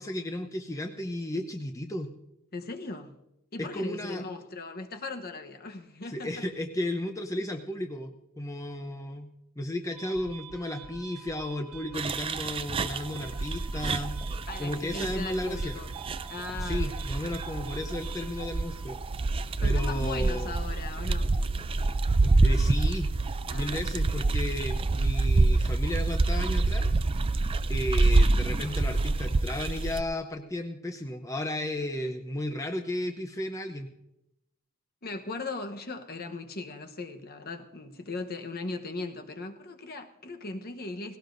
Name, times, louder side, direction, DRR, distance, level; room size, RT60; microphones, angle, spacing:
voice 1, 0.0-2.1 3.6-4.2 6.1-9.3 9.6-14.2 14.6-15.8 16.6-19.0 19.6-20.6 22.4-23.1 23.5-26.9 27.7-33.9, left 1 dB, 15° left, 0.7 m, -34 dB
voice 2, 2.5-3.2 3.5-6.4 14.5-16.0 16.3-16.9 19.6-21.3 23.5-23.9 35.0-41.2, left 3 dB, 45° left, 1.0 m, -38 dB
sound 1, 9.9-18.9, right 5 dB, 85° right, 1.4 m, -47 dB
sound 2, 11.9-30.0, right 2 dB, 25° right, 0.4 m, -27 dB
18.5 x 17.0 x 2.6 m
head